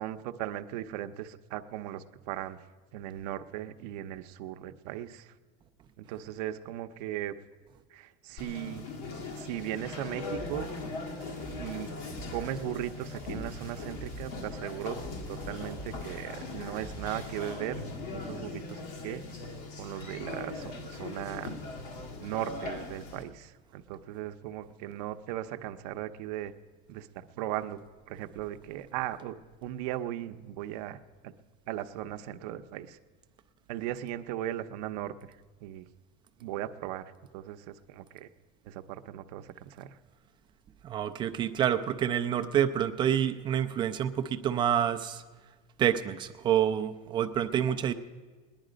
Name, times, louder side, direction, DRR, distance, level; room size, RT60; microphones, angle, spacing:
voice 1, 0.0-2.6 2.9-5.3 6.0-7.4 7.9-8.9 9.4-10.7 11.5-11.9 12.3-15.0 15.3-17.8 18.1-19.2 19.8-21.6 22.2-26.5 26.9-27.8 28.1-31.3 31.7-33.0 33.7-35.2 35.6-35.9 36.4-38.3 38.7-40.0, right 12 dB, 70° right, 9 dB, 0.7 m, -37 dB
Conversation, 8.4-23.2, left 3 dB, 70° left, 1.9 m, -40 dB
sound 1, 10.3-17.6, right 1 dB, 15° left, 4.0 m, -46 dB
voice 2, 40.8-45.2 45.8-47.9, right 9 dB, 20° right, 9 dB, 0.4 m, -28 dB
18.5 x 10.5 x 5.1 m, 1.3 s
cardioid pair, 170°, 21 cm